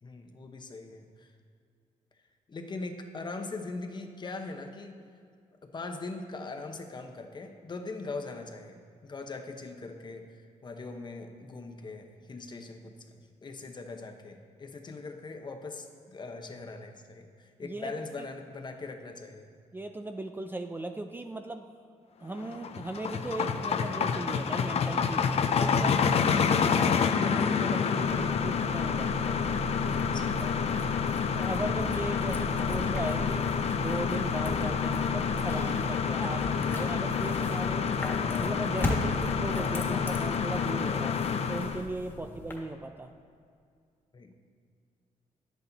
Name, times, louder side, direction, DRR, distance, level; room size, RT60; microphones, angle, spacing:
voice 1, 0.0-1.3 2.5-5.0 5.6-19.5 29.7-30.6 42.1-42.3 44.1-44.3, left 3 dB, 35° left, 5 dB, 0.9 m, -41 dB
voice 2, 17.6-17.9 18.2-18.3 19.7-21.7 22.2-25.3 25.6-29.3 31.3-33.5 33.8-38.1 38.4-41.2 41.5-43.1, right 2 dB, 15° right, 6 dB, 0.4 m, -38 dB
sound 1, 22.4-41.8, left 6 dB, 50° left, 0.6 m, -28 dB
sound 2, 28.0-42.6, equal, 15° left, 1.6 m, -38 dB
10.0 x 8.3 x 4.0 m, 2.3 s
cardioid pair, 100°, 13 cm